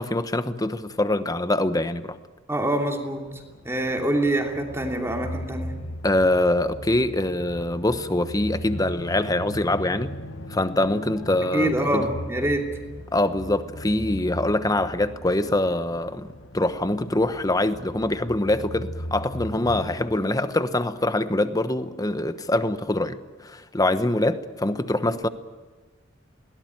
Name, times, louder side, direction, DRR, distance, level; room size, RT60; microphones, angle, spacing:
voice 1, 0.0-2.2 6.0-10.1 10.5-12.1 13.1-16.3 16.5-25.3, left 1 dB, 20° left, 1.1 m, -24 dB
voice 2, 2.5-3.2 3.6-5.7 11.5-12.7, right 1 dB, 15° right, 2.9 m, -25 dB
sound 1, 3.3-19.9, left 1 dB, 90° left, 1.7 m, -38 dB
21.5 x 18.0 x 9.3 m
head